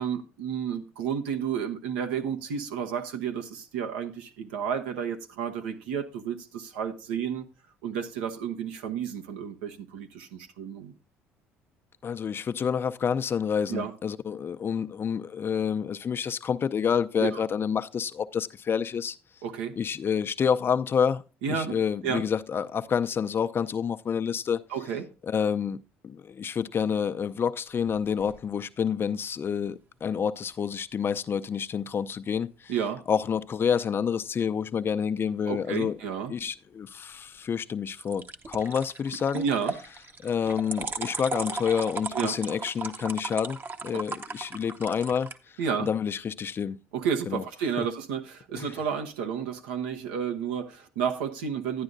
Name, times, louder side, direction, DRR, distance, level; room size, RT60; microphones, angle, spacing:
voice 1, 0.0-7.5 7.8-10.9 13.7-13.9 17.2-17.4 19.4-19.7 21.4-21.8 22.0-22.2 24.7-25.1 32.7-33.0 35.5-36.3 39.3-39.7 42.1-42.3 45.6-45.9 46.9-51.8, right 7 dB, 85° right, 1.0 m, -31 dB
voice 2, 12.0-19.2 19.8-21.2 21.5-24.6 25.3-32.7 33.1-36.0 36.3-39.4 40.2-43.6 43.8-45.3 45.8-46.8 47.3-47.4 47.8-47.9 48.5-48.7, left 7 dB, 40° left, 0.6 m, -28 dB
sound 1, 27.7-28.4 38.0-45.4, right 4 dB, 35° right, 0.9 m, -37 dB
12.0 x 9.6 x 2.6 m
hypercardioid pair, 70°, 6 cm